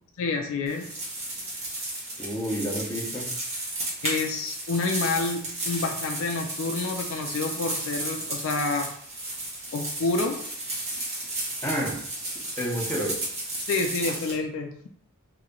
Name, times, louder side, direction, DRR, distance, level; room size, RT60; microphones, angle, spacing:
voice 1, 0.2-0.9 4.0-8.9 9.7-10.4 13.7-14.9, left 3 dB, 65° left, 4 dB, 0.4 m, -28 dB
sound 1, 0.7-14.3, right 2 dB, 30° right, 1.1 m, -33 dB
voice 2, 2.2-3.3 11.6-12.0 12.6-13.2, equal, 10° left, -3 dB, 0.9 m, -29 dB
3.1 x 2.7 x 3.8 m, 0.64 s
head